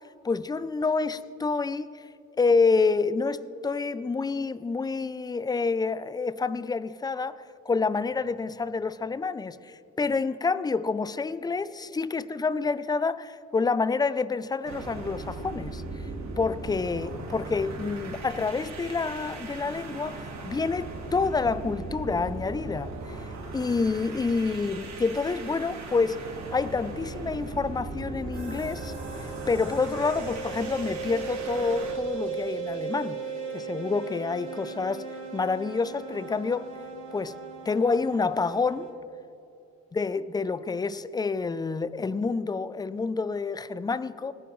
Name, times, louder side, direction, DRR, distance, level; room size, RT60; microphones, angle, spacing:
voice 1, 0.2-2.0 2.4-15.8 16.4-23.2 23.5-28.9 29.5-33.2 33.5-35.1 35.3-36.7 37.1-37.4 37.7-38.9 39.9-44.3, left 4 dB, 15° left, 15 dB, 0.3 m, -28 dB
sound 1, 14.6-32.0, right 3 dB, 65° right, 1.8 m, -38 dB
sound 2, 28.3-38.9, right 5 dB, 40° right, 3.2 m, -37 dB
19.0 x 9.5 x 3.1 m, 2.5 s
cardioid pair, 90°, 30 cm